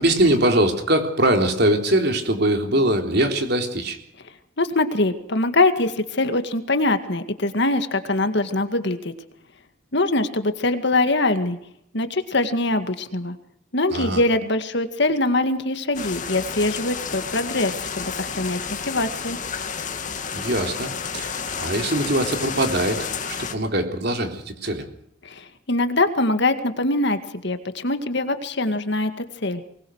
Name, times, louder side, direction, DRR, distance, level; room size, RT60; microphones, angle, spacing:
voice 1, 0.0-4.0 13.9-14.2 20.3-24.8, right 1 dB, 55° right, 5 dB, 3.8 m, -22 dB
voice 2, 4.6-9.1 9.9-11.6 11.9-13.4 13.7-19.4 25.2-29.6, left 2 dB, 55° left, 9 dB, 2.1 m, -23 dB
sound 1, 15.9-23.5, left 6 dB, 40° left, 2.3 m, -31 dB
24.0 x 20.5 x 6.4 m, 0.73 s
head